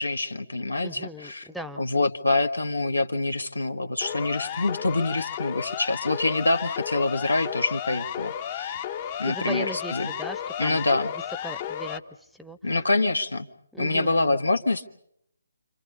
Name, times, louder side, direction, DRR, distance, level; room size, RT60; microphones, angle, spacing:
voice 1, 0.0-1.5 1.8-8.8 9.2-10.1 10.6-11.1 12.6-13.5 13.8-14.9, left 2 dB, 75° left, 6 dB, 1.6 m, -26 dB
voice 2, 0.8-1.8 9.0-10.8 11.4-12.0 12.4-12.6 13.7-14.4, equal, ahead, 9 dB, 1.0 m, -38 dB
Siren, 4.0-12.0, left 10 dB, 30° left, 1.0 m, -33 dB
29.5 x 25.5 x 5.4 m, 0.71 s
figure-of-eight pair, 140°, 0 cm